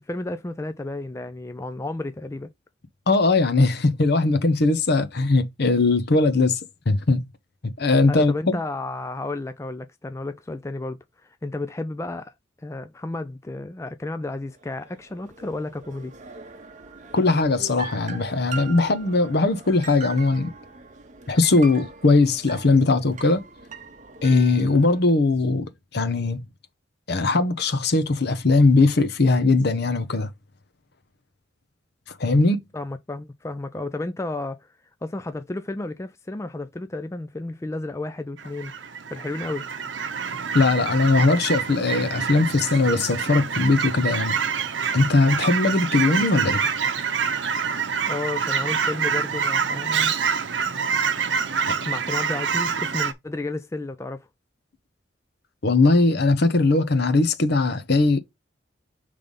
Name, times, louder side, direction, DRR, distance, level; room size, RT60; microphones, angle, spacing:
voice 1, 0.0-2.5 8.1-16.1 32.7-34.7 35.0-38.7 39.1-39.6 48.1-50.2 51.4-51.6 51.8-54.3, left 2 dB, 15° left, 0.4 m, -32 dB
voice 2, 3.1-6.6 6.9-7.2 7.6-8.6 17.1-20.5 21.3-23.4 24.2-26.5 27.1-30.3 32.2-32.6 40.5-44.4 44.9-46.6 51.7-51.8 55.6-58.2, left 3 dB, 60° left, 0.8 m, -20 dB
sound 1, 14.5-25.0, right 4 dB, 40° right, 0.8 m, -41 dB
Fowl / Chirp tweet, 38.4-53.1, right 6 dB, 70° right, 0.7 m, -26 dB
5.2 x 3.3 x 5.4 m
head